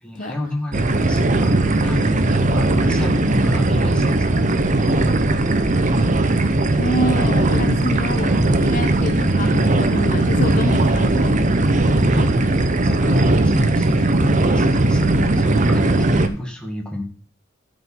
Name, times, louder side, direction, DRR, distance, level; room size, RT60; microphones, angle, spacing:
voice 1, 0.0-4.7 7.9-8.0 12.1-17.0, left 1 dB, 5° left, 1 dB, 1.9 m, -30 dB
sound 1, 0.7-16.3, right 2 dB, 40° right, 0.8 m, -18 dB
voice 2, 6.8-11.4, left 1 dB, 40° left, 5 dB, 1.0 m, -27 dB
13.0 x 5.2 x 5.5 m, 0.41 s
head